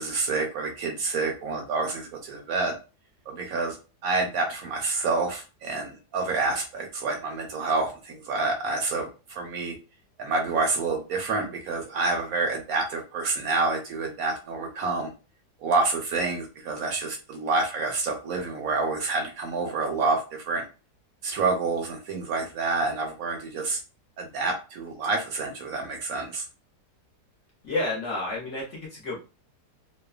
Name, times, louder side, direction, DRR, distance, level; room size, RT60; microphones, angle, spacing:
voice 1, 0.0-2.7 3.3-3.8 4.0-9.8 10.2-15.1 15.6-20.6 21.2-23.8 24.2-26.4, right 3 dB, 70° right, 2 dB, 0.9 m, -28 dB
voice 2, 27.6-29.2, left 2 dB, 60° left, -3 dB, 0.8 m, -30 dB
2.7 x 2.1 x 2.3 m, 0.32 s
omnidirectional pair, 1.8 m